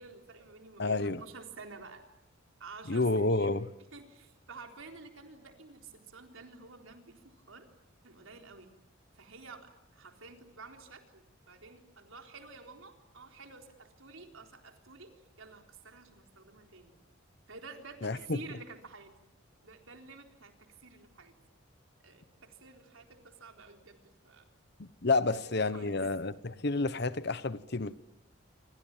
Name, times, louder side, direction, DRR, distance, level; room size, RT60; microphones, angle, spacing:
voice 1, 0.0-2.0 2.6-7.7 8.0-8.7 9.1-17.0 17.5-19.1 19.6-20.5 20.8-21.3 22.0-24.5 25.2-26.0, right 3 dB, 80° right, 4.0 m, -50 dB
voice 2, 0.8-1.2 2.9-3.7 18.0-18.4 24.8-27.9, left 3 dB, 55° left, 1.0 m, -30 dB
27.0 x 26.5 x 7.4 m
head